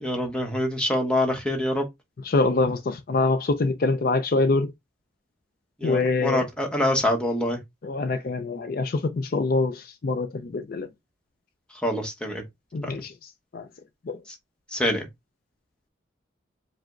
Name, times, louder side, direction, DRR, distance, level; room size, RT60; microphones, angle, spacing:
voice 1, 0.0-1.8 5.8-7.6 11.8-12.4 14.7-15.1, left 1 dB, 5° left, 0.9 m, -25 dB
voice 2, 2.2-4.7 5.8-6.5 7.8-10.9 12.7-13.1 13.5-13.7 14.1-14.2, left 3 dB, 50° left, 0.4 m, -24 dB
4.9 x 2.1 x 3.6 m
head